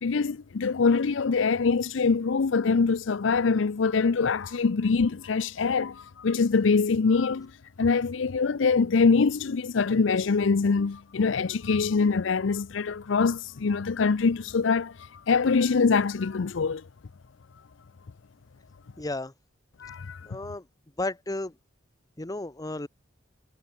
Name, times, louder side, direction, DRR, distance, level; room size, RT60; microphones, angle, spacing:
voice 1, 0.0-7.5 7.8-14.9 15.3-16.8 19.8-20.2, left 4 dB, 75° left, 0.5 m, -24 dB
voice 2, 19.0-19.3 20.3-20.6 21.0-21.5 22.2-22.9, left 2 dB, 20° left, 0.9 m, -33 dB
head